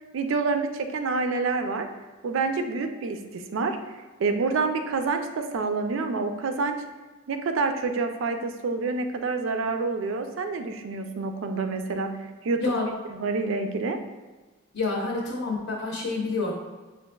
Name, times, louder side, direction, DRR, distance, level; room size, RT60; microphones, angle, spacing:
voice 1, 0.1-1.9 2.2-6.8 7.3-12.6 13.1-14.0, right 4 dB, 60° right, 7 dB, 0.4 m, -28 dB
voice 2, 12.6-12.9 14.7-16.5, left 3 dB, 60° left, -3 dB, 0.7 m, -28 dB
6.9 x 2.5 x 2.2 m, 1.3 s
head